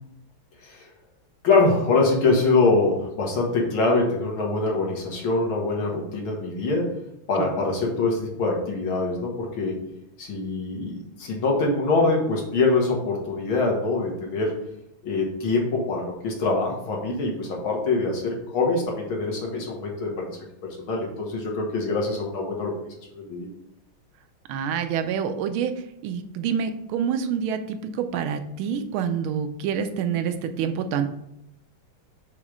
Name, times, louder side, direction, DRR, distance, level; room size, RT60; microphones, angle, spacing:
voice 1, 1.4-6.9 7.3-9.8 10.2-14.5 15.0-22.8 23.1-23.5, left 3 dB, 75° left, -1 dB, 2.1 m, -24 dB
voice 2, 24.5-25.7 26.0-31.1, right 7 dB, 90° right, 8 dB, 1.5 m, -27 dB
6.7 x 3.1 x 4.9 m, 0.78 s
omnidirectional pair, 2.3 m